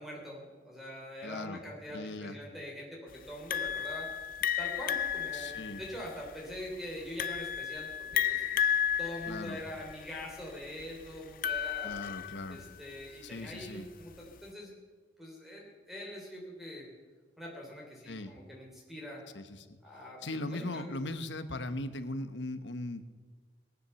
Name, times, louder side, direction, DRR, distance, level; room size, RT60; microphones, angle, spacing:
voice 1, 0.0-4.1 4.6-8.4 9.0-11.9 12.5-14.7 15.2-16.9 17.4-19.2 19.8-20.9 21.5-21.7, equal, ahead, -2 dB, 3.2 m, -43 dB
voice 2, 1.2-1.6 1.9-2.4 5.3-5.8 9.3-9.6 11.8-12.6 13.2-13.9 18.1-18.4 19.3-19.8 20.2-23.0, left 2 dB, 80° left, 10 dB, 1.1 m, -39 dB
sound 1, 3.5-12.8, left 9 dB, 50° left, 0.5 m, -33 dB
18.5 x 9.9 x 6.9 m, 1.4 s
head